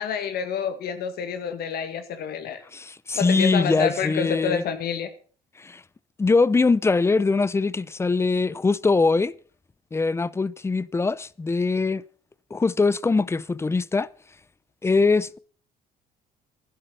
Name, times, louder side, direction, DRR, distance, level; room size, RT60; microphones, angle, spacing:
voice 1, 0.0-2.6 3.2-5.1, left 7 dB, 65° left, 1.8 m, -28 dB
voice 2, 2.7-4.6 5.6-5.8 6.2-9.3 9.9-12.0 12.5-14.1 14.8-15.4, left 3 dB, 15° left, 0.5 m, -22 dB
11.5 x 11.0 x 5.6 m
cardioid pair, 110°, 17 cm